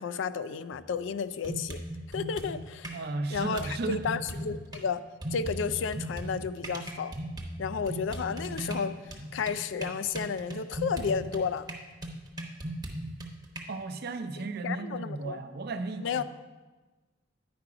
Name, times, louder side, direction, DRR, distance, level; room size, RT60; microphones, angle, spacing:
voice 1, 0.0-1.8 2.1-3.0 3.3-5.0 5.3-7.1 7.6-9.0 9.3-11.7 14.6-15.4 16.0-16.2, left 6 dB, 70° left, 14 dB, 0.4 m, -32 dB
sound 1, 0.7-0.9 1.4-3.0 3.3-4.8 5.2-13.6, right 1 dB, 20° right, 0.8 m, -38 dB
voice 2, 2.9-4.1 13.7-16.2, right 3 dB, 55° right, 8 dB, 0.6 m, -35 dB
9.5 x 4.8 x 4.8 m, 1.3 s
head